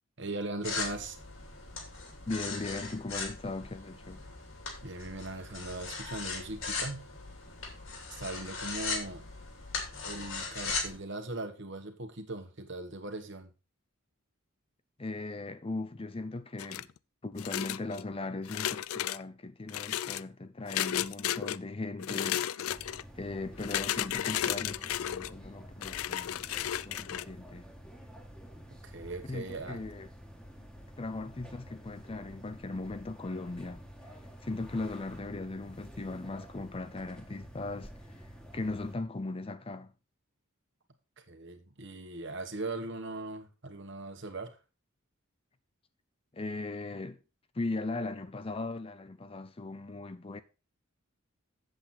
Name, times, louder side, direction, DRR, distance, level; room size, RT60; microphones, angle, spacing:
voice 1, 0.2-1.2 4.8-7.1 8.2-9.2 10.0-13.5 28.7-29.8 41.2-44.6, right 2 dB, 55° right, 1.5 m, -39 dB
sound 1, 0.6-11.0, left 4 dB, 65° left, 2.8 m, -39 dB
voice 2, 2.3-4.2 15.0-16.9 17.2-22.8 23.1-26.4 26.9-27.7 29.3-30.1 31.0-33.8 34.4-37.9 38.5-39.9 46.3-47.2 47.5-50.4, left 2 dB, 25° left, 0.5 m, -38 dB
sound 2, 16.6-17.0 17.4-18.0 18.5-19.2 19.7-20.2 20.7-21.6 22.0-23.0 23.6-25.3 25.8-27.3, left 11 dB, 85° left, 0.4 m, -33 dB
sound 3, 22.7-39.0, equal, 5° left, 1.5 m, -50 dB
8.1 x 7.8 x 4.2 m
head